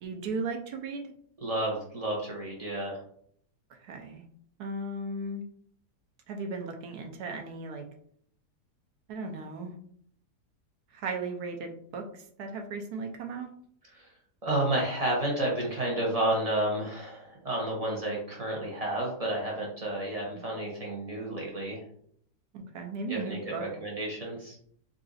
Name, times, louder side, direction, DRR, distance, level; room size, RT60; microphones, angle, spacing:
voice 1, 0.0-1.0 3.7-4.2 4.6-5.4 6.3-7.9 9.1-9.8 10.9-13.5 20.3-20.4 22.5-23.6, right 3 dB, 75° right, 4 dB, 1.1 m, -36 dB
voice 2, 1.4-3.0 13.9-14.1 14.4-21.8 23.1-24.6, right 1 dB, 50° right, -3 dB, 0.4 m, -31 dB
3.9 x 2.5 x 2.4 m, 0.63 s
omnidirectional pair, 1.7 m